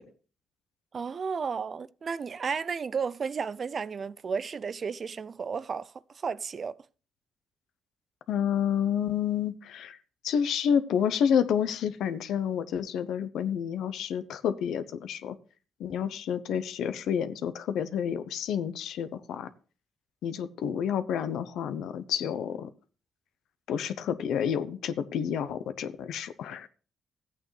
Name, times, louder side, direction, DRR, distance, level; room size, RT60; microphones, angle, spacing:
voice 1, 0.9-6.7, right 5 dB, 45° right, 0.5 m, -33 dB
voice 2, 8.3-10.0 10.2-15.4 15.8-19.5 20.2-22.7 23.7-26.7, left 8 dB, 80° left, 0.8 m, -29 dB
14.0 x 8.6 x 3.3 m
cardioid pair, 90°, 0 cm